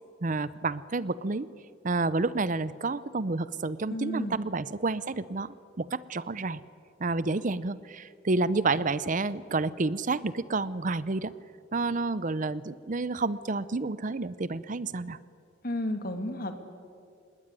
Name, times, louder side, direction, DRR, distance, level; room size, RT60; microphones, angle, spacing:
voice 1, 0.2-1.5 1.8-6.6 7.0-11.3 11.7-15.2, right 3 dB, 45° right, 17 dB, 0.7 m, -30 dB
voice 2, 3.9-4.4 15.6-16.6, left 1 dB, 50° left, 7 dB, 2.5 m, -32 dB
26.5 x 21.0 x 9.7 m, 2.4 s
head